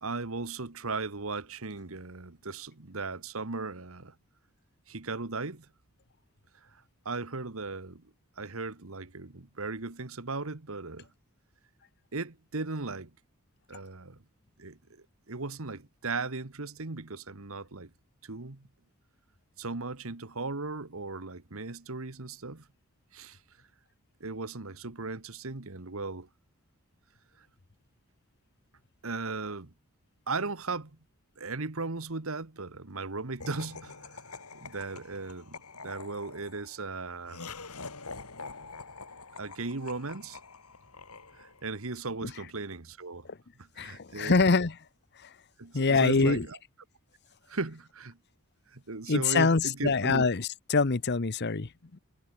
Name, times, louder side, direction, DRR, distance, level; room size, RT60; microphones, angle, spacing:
voice 1, 0.0-4.1 4.9-5.7 6.6-8.1 8.4-11.1 12.1-13.1 13.7-14.2 14.6-17.9 18.2-18.7 19.6-22.7 23.1-23.4 24.2-26.3 27.4-27.5 29.0-29.7 30.3-30.9 31.4-34.2 34.5-35.6 35.8-37.4 39.4-40.4 41.3-43.3 43.6-44.4 45.6-46.6 47.5-48.2 48.7-50.2, right 3 dB, 65° right, 1.5 m, -37 dB
Laughter, 33.4-41.8, left 4 dB, 85° left, 5.3 m, -45 dB
voice 2, 43.8-44.8 45.2-45.3 45.7-46.5 49.1-52.0, left 4 dB, 50° left, 0.8 m, -25 dB
head